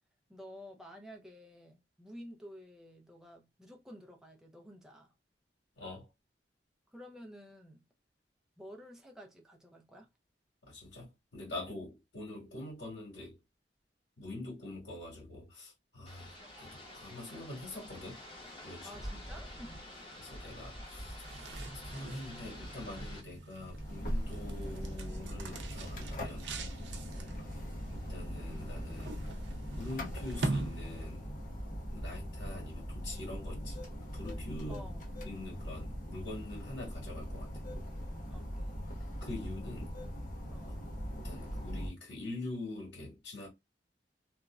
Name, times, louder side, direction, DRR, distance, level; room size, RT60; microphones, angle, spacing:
voice 1, 0.3-5.1 6.9-7.8 8.6-10.1 18.8-19.8 27.1-27.6 34.7-35.1 38.3-38.8 40.5-40.8, equal, 5° right, 0.5 m, -51 dB
voice 2, 5.7-6.1 10.7-13.4 14.2-18.2 18.6-18.9 20.2-21.2 21.7-26.5 27.9-29.3 29.7-31.3 31.9-33.8 34.1-34.8 35.2-37.5 39.2-39.9 40.6-40.8 41.1-43.5, left 2 dB, 80° left, 1.7 m, -44 dB
sound 1, 16.1-23.2, equal, 30° left, 1.3 m, -47 dB
sound 2, 21.0-31.4, right 2 dB, 75° right, 0.6 m, -43 dB
sound 3, 23.6-41.9, equal, 50° left, 0.8 m, -40 dB
3.0 x 2.3 x 2.3 m
head